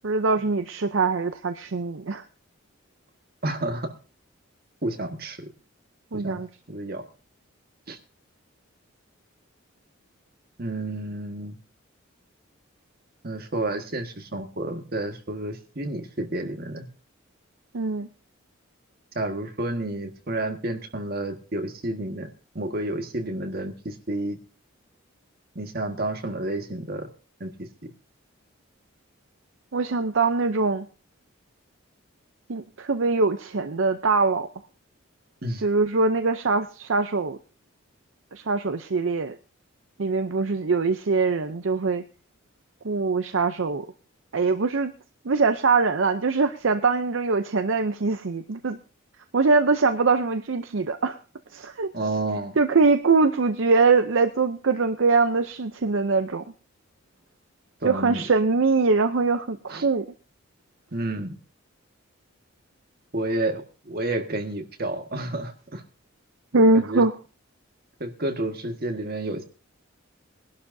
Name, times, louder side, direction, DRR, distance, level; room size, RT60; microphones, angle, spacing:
voice 1, 0.0-2.2 6.1-6.5 17.7-18.1 29.7-30.9 32.5-34.5 35.6-37.4 38.3-39.4 40.0-42.0 42.8-43.9 44.3-44.9 45.2-48.8 49.3-51.2 51.5-51.9 52.6-56.4 57.8-60.0 66.5-67.1, right 4 dB, 65° right, 8 dB, 0.6 m, -22 dB
voice 2, 3.4-3.9 4.8-5.5 6.1-6.4 6.7-7.0 7.9-8.0 10.6-11.6 13.2-16.9 19.2-22.3 22.6-24.4 25.6-27.1 27.4-27.7 35.4-35.6 51.9-52.6 57.8-58.2 59.7-59.9 60.9-61.3 63.1-65.8 66.7-67.0 68.0-69.4, right 1 dB, 45° right, 4 dB, 1.7 m, -30 dB
21.5 x 11.5 x 2.7 m, 0.35 s
head